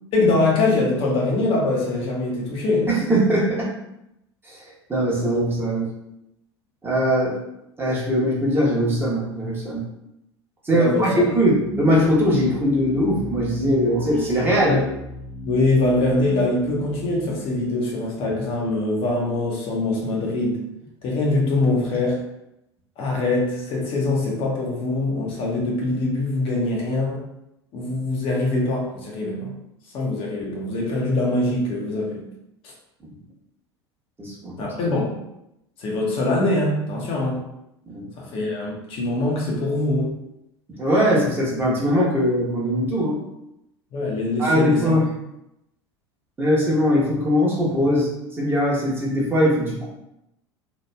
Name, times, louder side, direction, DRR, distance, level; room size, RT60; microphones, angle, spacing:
voice 1, 0.1-2.9 10.7-11.2 14.7-14.9 15.4-20.6 21.0-22.2 23.0-27.2 27.7-29.5 29.9-32.3 32.6-32.7 34.6-35.2 35.8-37.4 38.2-40.2 43.9-44.9, left 2 dB, 45° left, -2 dB, 0.7 m, -23 dB
voice 2, 2.9-3.7 4.4-5.9 6.8-7.4 7.8-9.8 10.6-14.8 33.0-33.2 34.2-34.5 37.9-38.1 40.8-43.2 44.4-45.1 46.4-48.1 48.4-49.8, equal, 15° right, -5 dB, 0.9 m, -21 dB
sound 1, 11.3-18.5, left 2 dB, 10° left, 0.6 m, -35 dB
2.9 x 2.3 x 2.2 m, 0.84 s
figure-of-eight pair, 80°, 14 cm